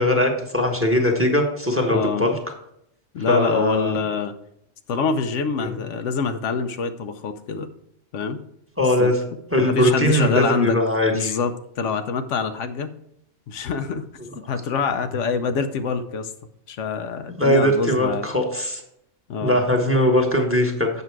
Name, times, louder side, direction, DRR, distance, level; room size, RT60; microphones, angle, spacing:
voice 1, 0.0-2.3 3.3-4.0 5.6-5.7 8.8-9.1 9.5-11.3 17.4-18.8 19.4-21.0, left 1 dB, 10° right, 2 dB, 1.3 m, -20 dB
voice 2, 1.9-2.2 3.1-4.3 4.9-7.7 8.1-8.4 8.8-9.1 9.6-10.8 11.1-12.9 13.5-14.0 14.3-16.3 16.7-18.3 19.3-19.6, left 5 dB, 85° left, 8 dB, 1.1 m, -25 dB
8.2 x 6.2 x 4.6 m, 0.77 s
omnidirectional pair, 1.2 m